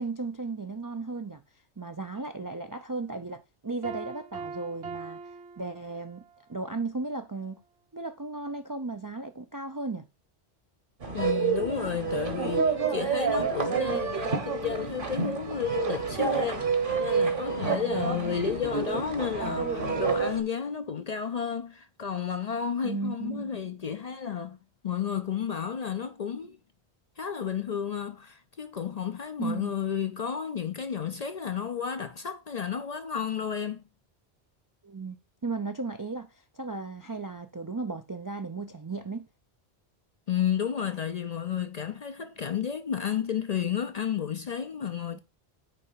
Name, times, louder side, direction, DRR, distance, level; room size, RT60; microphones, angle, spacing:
voice 1, 0.0-1.4 1.8-5.2 5.6-6.2 6.5-7.6 7.9-10.1 17.6-18.4 22.8-23.6 29.4-29.7 34.8-35.2 35.4-39.3 45.1-45.2, right 3 dB, 35° right, 0.3 m, -35 dB
Piano, 3.8-6.4, right 4 dB, 85° right, 1.3 m, -41 dB
sound 1, 11.0-20.4, right 5 dB, 55° right, 1.3 m, -28 dB
voice 2, 11.1-24.6 24.8-26.6 27.2-33.8 40.3-45.2, left 7 dB, 50° left, 0.5 m, -32 dB
9.1 x 3.3 x 5.6 m
omnidirectional pair, 1.1 m